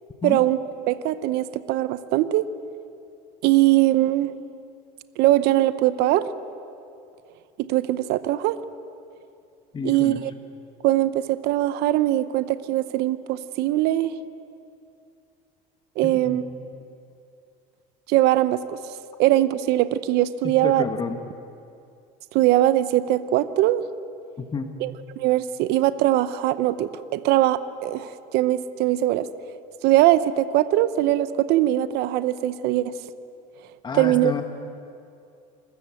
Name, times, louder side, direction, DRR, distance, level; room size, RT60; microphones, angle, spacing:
voice 1, 0.2-0.6 0.9-2.5 3.4-4.3 5.2-6.2 7.6-8.6 9.8-10.3 10.8-14.1 16.0-16.4 18.1-18.8 19.2-20.8 22.3-23.8 24.8-29.3 29.8-32.9 33.9-34.3, right 15 dB, 65° right, 14 dB, 0.8 m, -21 dB
voice 2, 9.7-10.2 16.0-16.4 20.4-21.2 24.4-24.7 33.8-34.4, left 5 dB, 25° left, 6 dB, 1.4 m, -30 dB
26.0 x 13.5 x 7.7 m, 2.5 s
supercardioid pair, 100°, 18 cm